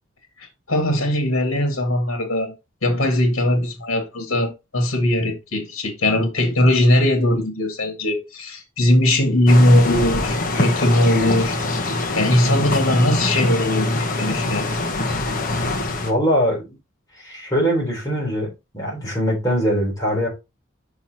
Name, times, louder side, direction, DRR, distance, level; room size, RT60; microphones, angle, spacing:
voice 1, 0.4-2.5 2.8-11.5 12.1-14.6, left 1 dB, 80° left, 1.9 m, -19 dB
sound 1, 9.5-16.1, left 2 dB, 40° left, 1.2 m, -23 dB
voice 2, 16.0-16.8 17.2-20.3, equal, 15° left, 3.8 m, -22 dB
6.9 x 5.8 x 2.9 m
head